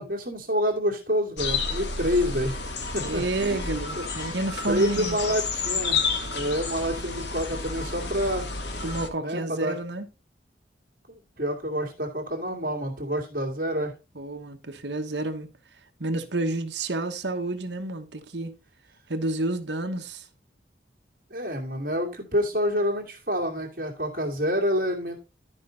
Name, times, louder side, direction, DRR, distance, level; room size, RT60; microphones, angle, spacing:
voice 1, 0.0-2.6 2.9-3.7 3.9-4.0 4.6-6.0 6.3-8.5 9.2-9.8 11.1-14.0 21.3-25.2, equal, 50° right, 2.2 m, -28 dB
sound 1, 1.4-9.1, left 4 dB, 65° left, 1.4 m, -30 dB
voice 2, 3.0-5.4 8.8-10.1 14.1-15.5 16.0-18.6 19.1-20.3, right 2 dB, 65° right, 1.2 m, -30 dB
12.0 x 5.4 x 3.9 m
head